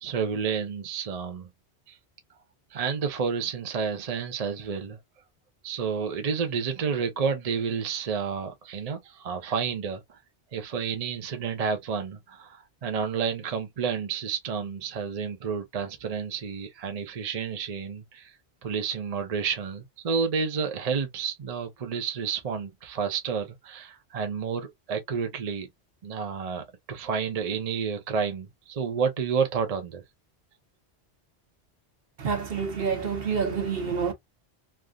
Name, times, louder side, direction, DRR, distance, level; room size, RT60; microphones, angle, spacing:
voice 1, 0.0-1.5 1.9-2.0 2.7-5.0 5.6-10.2 10.5-18.3 18.6-25.7 26.0-30.0, right 6 dB, 40° right, 0.6 m, -30 dB
voice 2, 32.2-34.1, right 6 dB, 60° right, 1.1 m, -28 dB
3.3 x 2.5 x 2.2 m
omnidirectional pair, 1.1 m